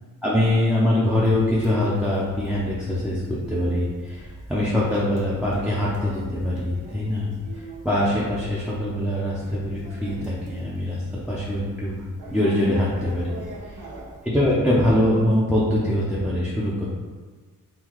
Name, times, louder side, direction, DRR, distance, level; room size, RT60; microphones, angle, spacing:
voice 1, 0.2-7.3 7.8-11.9 12.3-13.4 14.3-16.9, left 1 dB, 5° right, -8 dB, 0.5 m, -23 dB
Conversation, 1.1-14.2, right 1 dB, 65° right, 0.7 m, -42 dB
3.8 x 2.3 x 3.0 m, 1.4 s
cardioid pair, 85°, 33 cm